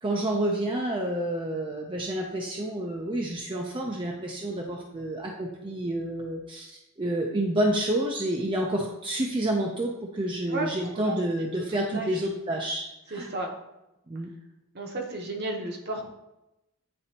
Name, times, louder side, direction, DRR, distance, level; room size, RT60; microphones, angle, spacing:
voice 1, 0.0-13.3 14.1-14.3, right 1 dB, 25° right, 0 dB, 0.5 m, -29 dB
voice 2, 10.5-11.2 11.9-12.1 13.1-13.5 14.7-16.1, right 2 dB, 50° right, 1 dB, 1.0 m, -33 dB
9.5 x 3.9 x 2.8 m, 0.92 s
head